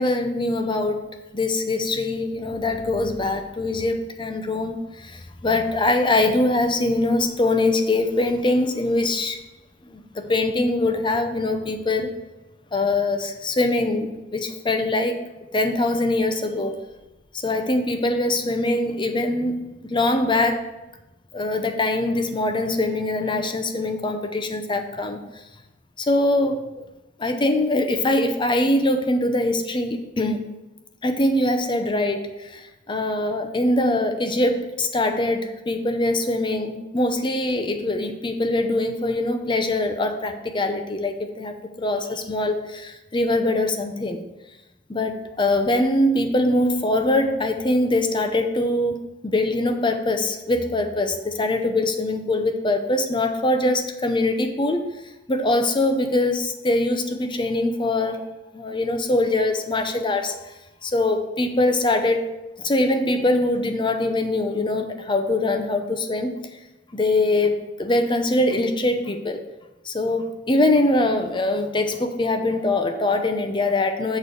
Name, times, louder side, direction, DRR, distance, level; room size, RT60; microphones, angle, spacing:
voice 1, 0.0-9.4 9.8-12.1 12.7-15.2 15.5-16.8 17.4-20.7 21.3-25.2 26.0-26.9 27.2-30.4 31.0-44.2 44.9-54.9 55.3-58.2 58.5-60.3 60.8-62.3 62.6-66.3 66.9-69.4 69.8-74.2, left 2 dB, 25° left, 6 dB, 0.7 m, -23 dB
6.9 x 4.1 x 6.3 m, 0.99 s
head